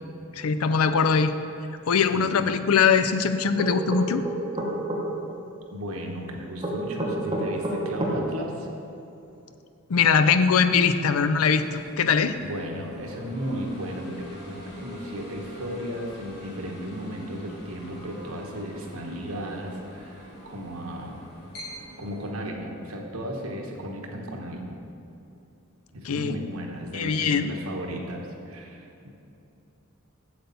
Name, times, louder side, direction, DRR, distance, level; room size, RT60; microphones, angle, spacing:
voice 1, 0.4-1.3 1.9-4.2 9.9-11.7 12.0-12.3 26.0-26.3 26.9-27.5, left 6 dB, 80° left, 10 dB, 0.5 m, -21 dB
voice 2, 2.1-2.6 5.7-8.7 12.4-21.2 22.0-24.8 25.9-29.1, equal, 85° right, 1 dB, 1.2 m, -35 dB
sound 1, 3.6-5.0 6.6-8.2, right 1 dB, 25° right, 1.3 m, -28 dB
sound 2, 10.7-22.3, left 1 dB, 50° left, 2.1 m, -45 dB
8.0 x 7.9 x 4.1 m, 2.9 s
head